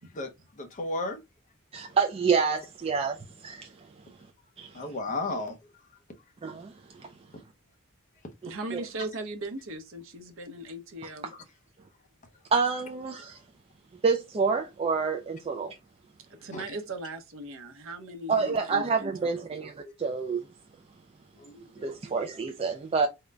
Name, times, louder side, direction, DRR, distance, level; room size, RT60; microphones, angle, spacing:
voice 1, 0.1-1.2 4.7-5.6 16.5-16.6 21.4-21.9, left 2 dB, 35° left, 0.7 m, -34 dB
voice 2, 1.7-4.2 4.6-4.9 6.4-7.1 8.7-8.8 12.5-13.4 14.0-15.8 18.3-20.5 21.8-23.1, right 5 dB, 25° right, 0.3 m, -28 dB
voice 3, 8.4-11.3 16.4-19.5, right 2 dB, 60° right, 0.7 m, -38 dB
3.7 x 2.1 x 3.2 m
head